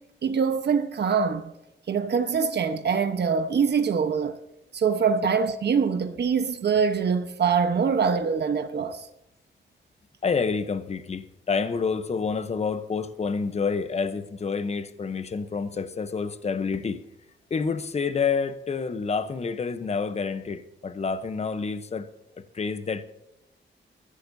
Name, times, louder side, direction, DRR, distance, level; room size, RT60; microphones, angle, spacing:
voice 1, 0.2-1.5 1.9-4.4 4.7-9.1, right 6 dB, 60° right, 1.1 m, -24 dB
voice 2, 10.2-17.0 17.5-22.1 22.5-23.0, left 5 dB, 35° left, 0.9 m, -28 dB
21.5 x 15.0 x 2.7 m
wide cardioid pair, 160°, 20 cm